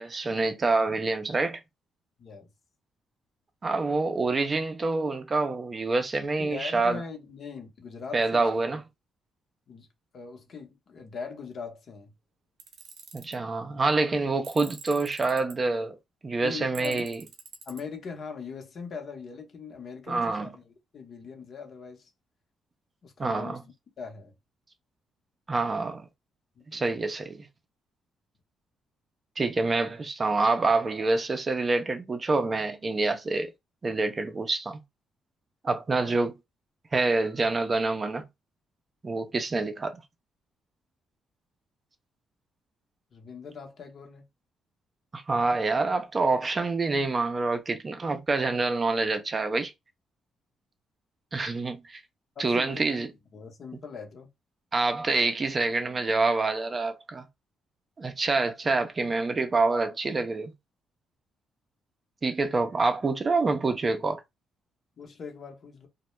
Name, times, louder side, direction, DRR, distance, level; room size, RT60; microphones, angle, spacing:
voice 1, 0.0-1.6 3.6-7.0 8.1-8.8 13.1-16.0 16.2-17.2 20.1-20.5 23.2-23.6 25.5-26.1 26.7-27.5 29.4-33.5 33.8-34.8 35.6-36.3 36.9-38.2 39.0-40.0 45.1-49.7 51.3-52.0 52.4-53.1 54.7-57.3 58.0-60.5 62.2-64.2, right 3 dB, 30° right, 0.4 m, -26 dB
voice 2, 6.4-8.5 9.7-9.9 10.1-12.1 16.4-17.1 17.7-22.1 23.0-24.3 26.6-26.8 43.1-44.2 52.4-52.9 53.3-54.3 65.0-65.9, left 5 dB, 55° left, 0.7 m, -41 dB
Tools, 12.6-13.4 14.4-15.5 16.7-17.8, right 6 dB, 80° right, 0.6 m, -46 dB
2.1 x 2.1 x 3.0 m
cardioid pair, 90°, 0 cm